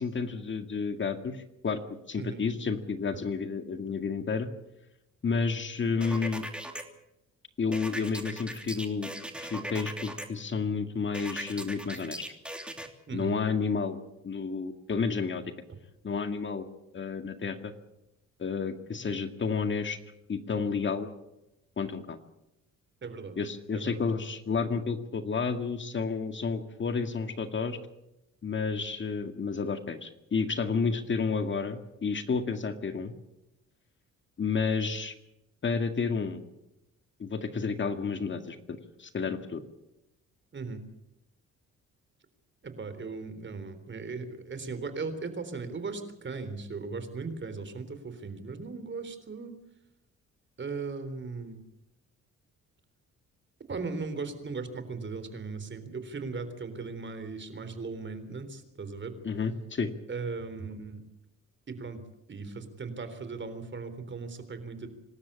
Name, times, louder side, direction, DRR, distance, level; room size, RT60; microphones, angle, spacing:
voice 1, 0.0-1.8 2.1-4.5 5.2-6.4 7.6-9.1 9.4-12.2 13.1-15.4 16.0-16.6 16.9-17.7 18.4-20.0 20.3-21.1 21.8-22.2 23.4-27.8 28.4-33.1 34.4-35.1 35.6-36.4 37.2-39.6 59.2-59.9, left 5 dB, 40° left, 8 dB, 2.0 m, -31 dB
sound 1, 6.0-6.8 7.7-10.3 11.1-12.9, right 1 dB, 5° right, 3.0 m, -39 dB
voice 2, 23.0-23.4 23.7-24.0 40.5-40.8 42.6-49.5 50.6-51.6 53.7-59.2 60.1-61.0 61.7-62.0 62.3-64.9, right 4 dB, 40° right, 10 dB, 3.7 m, -38 dB
26.0 x 13.0 x 8.8 m, 0.89 s
cardioid pair, 90°, 30 cm